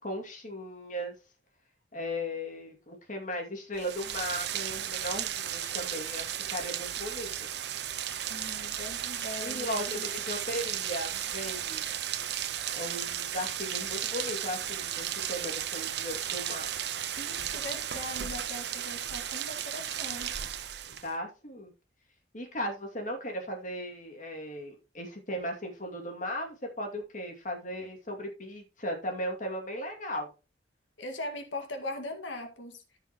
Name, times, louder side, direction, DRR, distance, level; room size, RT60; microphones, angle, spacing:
voice 1, 0.0-1.1 1.9-7.5 9.4-11.9 12.7-16.7 20.9-21.7 22.3-30.3, equal, 45° left, 2.5 m, -37 dB
Rain, 3.8-21.2, right 10 dB, 60° right, 0.9 m, -35 dB
voice 2, 8.3-9.7 9.9-10.1 17.2-20.4 31.0-32.8, left 1 dB, 85° left, 2.0 m, -40 dB
14.5 x 5.7 x 3.0 m
head